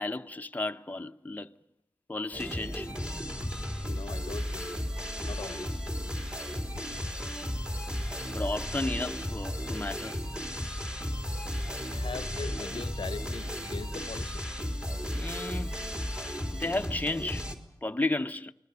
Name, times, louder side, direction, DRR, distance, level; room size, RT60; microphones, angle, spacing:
voice 1, 0.0-1.5 2.1-2.9 8.3-10.2 15.1-15.8 16.5-17.5 17.8-18.5, left 2 dB, 20° left, 0.9 m, -33 dB
sound 1, 2.3-17.6, equal, 10° right, 3.4 m, -34 dB
voice 2, 3.9-4.7 5.2-5.8 6.7-6.8 11.9-14.5, left 5 dB, 70° left, 0.8 m, -41 dB
29.5 x 20.5 x 6.9 m
cardioid pair, 55°, 9 cm